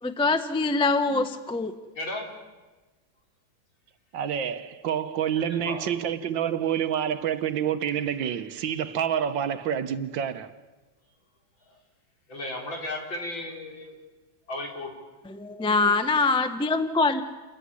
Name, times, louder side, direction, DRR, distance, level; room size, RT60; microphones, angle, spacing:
voice 1, 0.0-1.7 15.3-17.2, left 3 dB, 5° left, 0.6 m, -24 dB
voice 2, 2.0-2.3 5.3-5.9 12.3-13.9 14.5-14.9, left 1 dB, 70° left, 4.7 m, -35 dB
voice 3, 4.1-10.5, right 9 dB, 70° right, 1.7 m, -28 dB
29.0 x 14.5 x 9.7 m
omnidirectional pair, 2.2 m